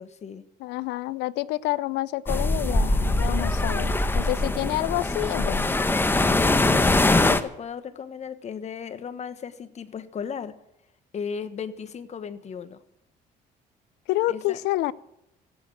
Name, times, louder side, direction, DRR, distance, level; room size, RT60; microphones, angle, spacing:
voice 1, 0.0-0.4 7.0-10.5 11.1-12.8 14.3-14.6, left 7 dB, 40° left, 12 dB, 1.3 m, -36 dB
voice 2, 0.6-5.8 14.1-14.9, left 17 dB, 90° left, 19 dB, 0.6 m, -28 dB
sound 1, 2.3-7.4, left 2 dB, 15° left, 1.0 m, -22 dB
16.0 x 8.6 x 7.6 m, 0.83 s
cardioid pair, 110°, 17 cm